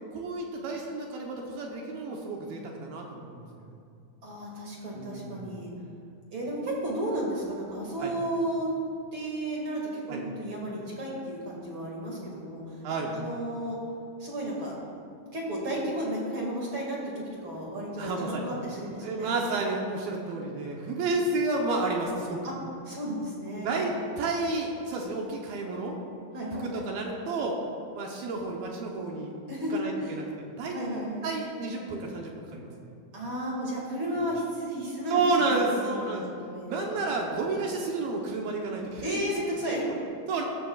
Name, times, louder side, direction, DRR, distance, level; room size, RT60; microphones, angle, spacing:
voice 1, 0.1-3.7 4.9-5.4 8.0-8.1 10.1-10.2 12.8-13.1 18.0-18.5 19.0-22.4 23.6-26.0 26.6-27.6 27.9-29.4 29.7-30.8 31.2-32.7 35.1-36.2 36.7-39.1 39.8-40.0 40.3-40.4, right 3 dB, 70° right, 0 dB, 2.5 m, -31 dB
voice 2, 4.2-5.7 6.3-8.7 9.1-9.8 10.1-12.8 13.1-13.8 14.2-14.7 15.3-19.3 22.4-22.5 22.9-23.7 23.9-24.0 26.3-26.8 29.5-29.7 30.0-30.1 30.7-31.3 33.1-36.9 39.0-39.9, right 1 dB, 40° right, -4 dB, 1.9 m, -33 dB
16.0 x 13.5 x 2.4 m, 2.4 s
omnidirectional pair, 5.0 m